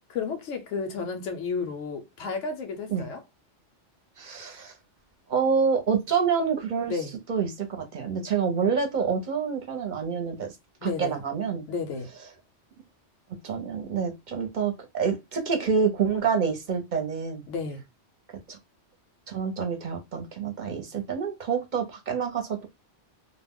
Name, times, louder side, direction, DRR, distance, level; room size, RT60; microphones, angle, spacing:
voice 1, 0.1-3.2 6.9-7.1 10.8-11.2 11.7-12.1 17.5-17.8, left 5 dB, 85° left, 1.0 m, -32 dB
voice 2, 4.2-4.7 5.3-10.5 10.8-11.7 13.4-17.4 18.5-18.6 19.3-22.7, right 6 dB, 45° right, 0.7 m, -27 dB
2.4 x 2.1 x 3.5 m
omnidirectional pair, 1.2 m